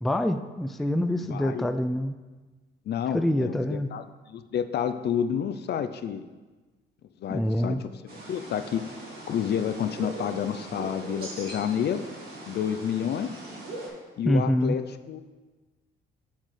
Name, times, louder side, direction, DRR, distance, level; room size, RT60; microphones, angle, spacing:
voice 1, 0.0-2.1 3.1-3.9 7.3-7.8 14.3-14.8, left 1 dB, ahead, 8 dB, 0.3 m, -25 dB
voice 2, 1.3-1.7 2.9-6.3 7.2-7.9 8.3-8.9 9.3-12.0 12.5-13.4 14.2-15.2, left 8 dB, 60° left, 10 dB, 0.5 m, -29 dB
sound 1, 8.1-13.9, right 2 dB, 50° right, 2.3 m, -40 dB
7.4 x 7.3 x 3.3 m, 1.3 s
cardioid pair, 90°, 20 cm